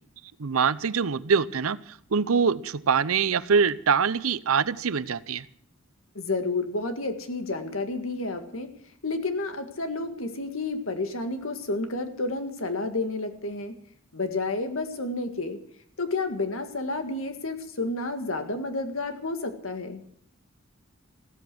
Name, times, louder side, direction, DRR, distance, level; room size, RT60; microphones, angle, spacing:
voice 1, 0.4-1.8 2.1-5.5, right 6 dB, 85° right, 17 dB, 0.6 m, -24 dB
voice 2, 6.2-8.7 9.0-13.7 14.1-15.6 16.0-20.0, left 3 dB, 70° left, 7 dB, 1.8 m, -30 dB
15.0 x 13.5 x 6.1 m, 0.64 s
head